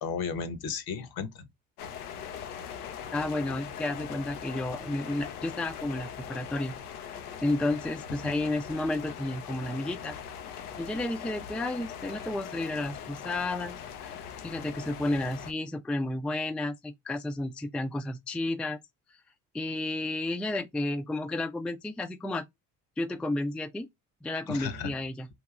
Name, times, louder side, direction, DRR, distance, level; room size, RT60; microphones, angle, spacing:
voice 1, 0.0-1.5 8.2-8.3 24.5-25.0, left 6 dB, 55° left, 1.0 m, -34 dB
sound 1, 1.8-15.5, left 8 dB, 85° left, 0.6 m, -41 dB
voice 2, 3.1-7.1 7.4-10.2 10.8-18.8 19.5-22.4 23.0-23.9 24.2-25.3, left 2 dB, ahead, 0.4 m, -32 dB
3.4 x 2.6 x 2.3 m
hypercardioid pair, 60°, 44 cm